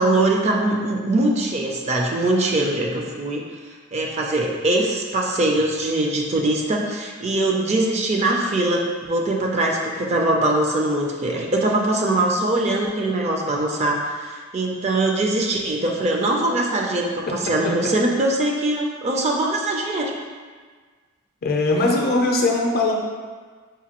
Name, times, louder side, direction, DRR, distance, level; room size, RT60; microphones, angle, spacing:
voice 1, 0.0-3.5 3.9-20.1, right 2 dB, 35° right, 0 dB, 0.4 m, -22 dB
voice 2, 21.4-22.9, left 2 dB, 50° left, 0 dB, 0.5 m, -20 dB
4.9 x 2.6 x 2.9 m, 1.5 s
head